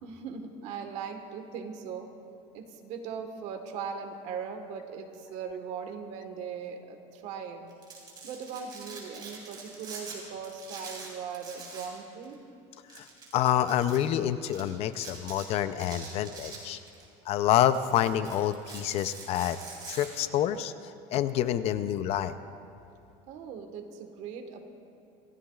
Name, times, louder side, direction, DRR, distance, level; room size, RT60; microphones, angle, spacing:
voice 1, 0.0-2.1 2.5-7.7 8.2-12.4 23.3-24.6, right 6 dB, 55° right, 6 dB, 1.4 m, -39 dB
Domestic sounds home sounds, 7.7-10.2 10.4-12.0 12.2-12.3 12.9-14.0 14.5-14.6 14.9-15.4 15.8-17.0 17.4-20.1, right 4 dB, 30° right, 3.8 m, -44 dB
voice 2, 13.3-16.8 17.3-19.6 19.9-20.7 21.1-22.3, left 11 dB, 45° left, 12 dB, 0.5 m, -27 dB
27.0 x 16.0 x 2.4 m, 2.6 s
cardioid pair, 155°, 14 cm